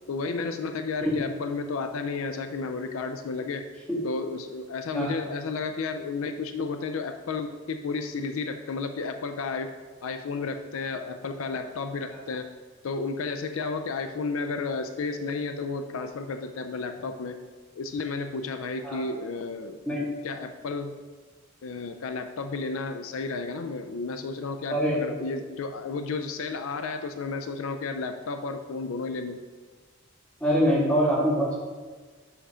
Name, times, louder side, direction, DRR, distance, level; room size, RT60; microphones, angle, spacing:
voice 1, 0.1-3.7 4.0-9.7 10.0-12.5 12.8-17.4 17.7-21.0 21.6-29.4, left 4 dB, 70° left, 7 dB, 0.4 m, -32 dB
voice 2, 24.7-25.2 30.4-31.6, equal, 5° left, -6 dB, 1.8 m, -24 dB
5.8 x 5.5 x 4.9 m, 1.4 s
head